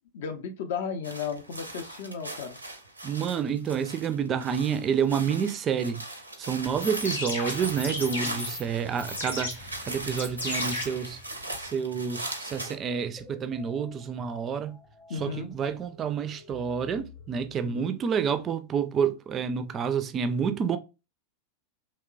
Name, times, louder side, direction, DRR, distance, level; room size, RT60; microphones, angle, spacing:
voice 1, 0.1-2.6 8.2-8.4 15.1-15.5 17.6-18.0, left 6 dB, 55° left, 0.5 m, -35 dB
sound 1, 1.0-12.7, right 1 dB, 85° right, 0.5 m, -39 dB
voice 2, 3.0-6.0 6.4-11.2 11.6-14.8 15.2-20.8, right 7 dB, 25° right, 0.3 m, -29 dB
sound 2, 6.7-11.7, left 2 dB, 75° left, 0.8 m, -35 dB
sound 3, 12.5-17.8, left 3 dB, 15° left, 0.6 m, -51 dB
2.9 x 2.1 x 2.3 m
figure-of-eight pair, 90°, 0 cm